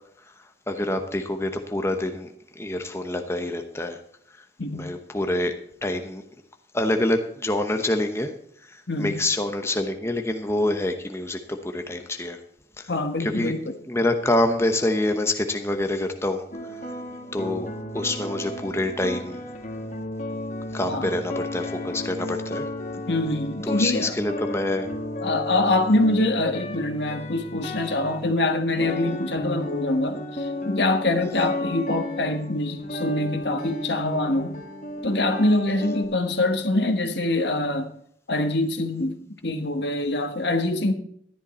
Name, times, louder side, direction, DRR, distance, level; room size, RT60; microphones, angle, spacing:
voice 1, 0.7-4.0 4.7-5.5 5.8-6.2 6.7-8.3 8.7-12.4 12.8-12.9 13.2-13.5 13.9-16.4 17.3-17.7 17.9-19.4 20.7-22.7 23.6-24.9 28.8-29.2 31.2-31.4, left 1 dB, 15° left, 0.9 m, -26 dB
voice 2, 8.9-9.2 12.9-13.6 20.8-21.2 23.1-24.1 25.2-34.6 35.0-37.9 38.3-39.2 39.4-40.9, left 2 dB, 75° left, 1.4 m, -24 dB
sound 1, 16.5-36.0, left 1 dB, 45° left, 1.9 m, -34 dB
13.0 x 11.5 x 4.3 m
head